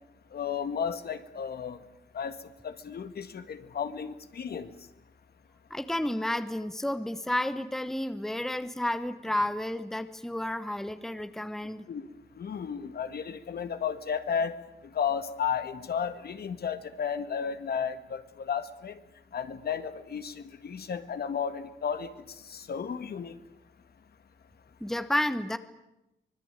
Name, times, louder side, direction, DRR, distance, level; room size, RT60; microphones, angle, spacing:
voice 1, 0.3-1.8 2.1-2.4 2.6-4.7 11.9-12.1 12.4-14.6 14.9-19.0 19.3-22.1 22.4-23.4, left 7 dB, 55° left, 10 dB, 1.8 m, -33 dB
voice 2, 5.7-11.8 24.8-25.6, left 1 dB, ahead, 12 dB, 1.1 m, -31 dB
24.5 x 21.0 x 9.1 m, 0.91 s
cardioid pair, 120°, 19 cm